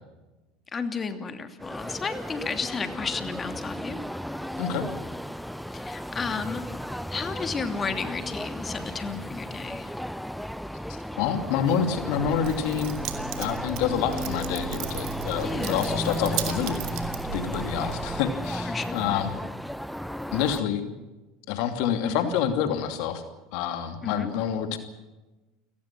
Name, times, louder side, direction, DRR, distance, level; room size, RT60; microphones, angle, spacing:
voice 1, 0.7-4.0 5.7-6.8 7.1-10.0 15.4-15.8 18.6-19.3 22.0-22.3 24.0-24.3, left 5 dB, 25° left, 8 dB, 2.9 m, -33 dB
sound 1, 1.6-20.6, equal, ahead, 0.8 m, -34 dB
voice 2, 11.2-13.0 13.4-19.3 20.3-20.8 21.5-23.2 23.5-24.8, left 8 dB, 65° left, 7 dB, 2.7 m, -27 dB
Keys jangling, 12.2-18.2, right 12 dB, 60° right, 2.9 m, -36 dB
29.5 x 18.0 x 6.1 m, 1.1 s
hypercardioid pair, 80°, 0 cm